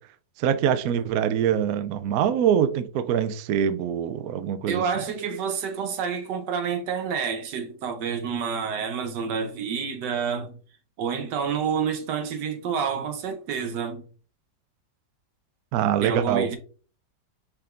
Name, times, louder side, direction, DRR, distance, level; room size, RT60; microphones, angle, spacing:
voice 1, 0.4-4.8 15.7-16.5, right 9 dB, 90° right, 0.7 m, -24 dB
voice 2, 4.7-10.6 11.0-14.0 16.0-16.6, right 6 dB, 65° right, 1.3 m, -28 dB
5.7 x 3.7 x 2.4 m
omnidirectional pair, 2.1 m